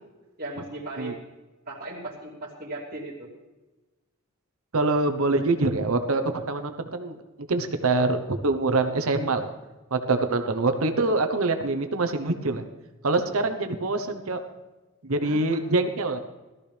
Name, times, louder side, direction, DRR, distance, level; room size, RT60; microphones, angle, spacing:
voice 1, 0.4-1.2 1.7-3.3 10.3-10.4 13.3-13.6 15.2-15.6, right 2 dB, 40° right, -5 dB, 2.8 m, -38 dB
voice 2, 4.7-6.2 6.5-7.2 7.5-9.5 9.9-12.6 13.0-14.4 15.0-16.2, right 3 dB, 70° right, 7 dB, 1.0 m, -25 dB
18.0 x 13.5 x 3.4 m, 1.1 s
head